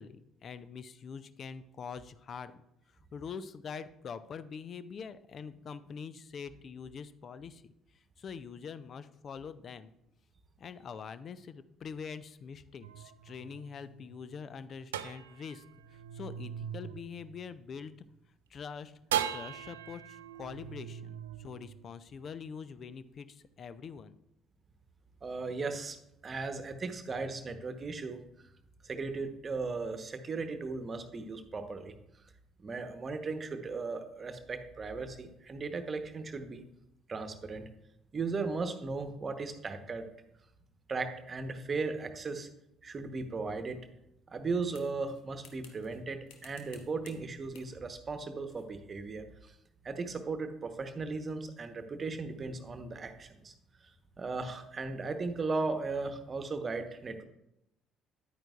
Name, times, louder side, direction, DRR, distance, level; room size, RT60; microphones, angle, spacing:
voice 1, 0.0-2.6 3.1-7.7 8.2-9.9 10.6-15.6 15.9-17.9 18.5-18.9 19.3-24.2, left 6 dB, 45° left, 13 dB, 0.5 m, -44 dB
sound 1, 12.8-18.1 19.1-22.5, right 10 dB, 75° right, 0.3 m, -40 dB
voice 2, 25.2-26.0 26.2-28.2 28.8-31.9 32.6-36.6 37.1-37.6 38.1-40.0 40.9-42.5 42.8-43.8 44.3-49.5 49.8-53.5 54.2-57.2, right 4 dB, 35° right, 8 dB, 1.1 m, -37 dB
sound 2, 44.7-46.0 46.3-47.2 47.5-47.7 48.5-48.7, left 7 dB, 65° left, 0.9 m, -57 dB
10.5 x 8.9 x 2.5 m, 0.83 s
figure-of-eight pair, 50°, 0 cm